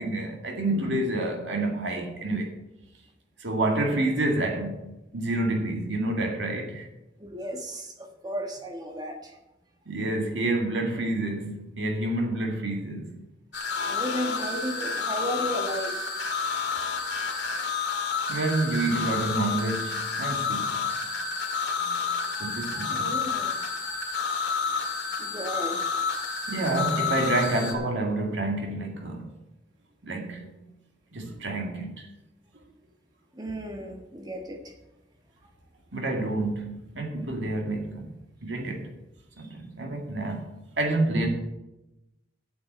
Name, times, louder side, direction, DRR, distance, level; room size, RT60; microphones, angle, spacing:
voice 1, 0.0-2.5 3.4-6.9 9.9-13.2 18.3-21.0 21.8-22.1 22.4-23.1 26.5-29.3 30.0-30.5 31.1-32.1 35.9-38.1 38.4-38.9 39.4-41.3, right 2 dB, 85° right, 2.0 m, -28 dB
voice 2, 3.7-4.0 7.2-9.4 13.9-16.0 22.2-24.0 25.2-25.8 33.3-34.7 39.4-39.5, equal, 20° right, 1.4 m, -35 dB
sound 1, 13.5-27.7, left 5 dB, 65° left, 2.1 m, -30 dB
8.4 x 8.0 x 7.7 m
head